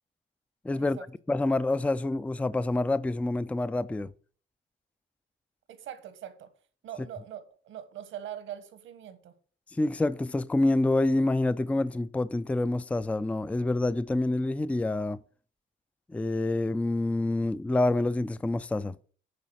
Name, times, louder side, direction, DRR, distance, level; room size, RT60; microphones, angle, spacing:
voice 1, 0.6-1.0 1.3-4.1 9.8-15.2 16.1-18.9, left 2 dB, 5° left, 0.4 m, -27 dB
voice 2, 5.7-6.5 6.8-9.3, right 10 dB, 80° right, 1.3 m, -42 dB
9.6 x 3.9 x 6.4 m
cardioid pair, 90°, 20 cm